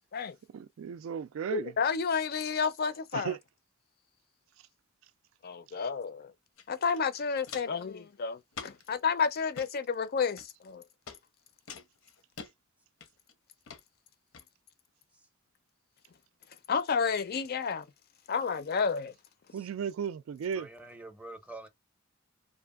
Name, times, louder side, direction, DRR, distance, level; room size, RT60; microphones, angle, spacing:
voice 1, 0.5-1.7 3.1-3.4 19.5-20.7, right 7 dB, 70° right, 0.3 m, -35 dB
voice 2, 1.5-3.4 5.4-6.3 6.7-10.8 16.7-17.9 18.3-19.1, left 5 dB, 50° left, 0.4 m, -31 dB
Walk footsteps, 6.6-6.7 6.9-7.8 8.5-8.9 9.4-9.7 10.4-10.7 11.1-11.2 11.7-12.5 13.0-13.3 13.7-13.8 14.3-14.4, left 6 dB, 85° left, 0.7 m, -45 dB
voice 3, 20.5-21.7, right 2 dB, 5° right, 0.6 m, -46 dB
2.8 x 2.4 x 2.3 m
head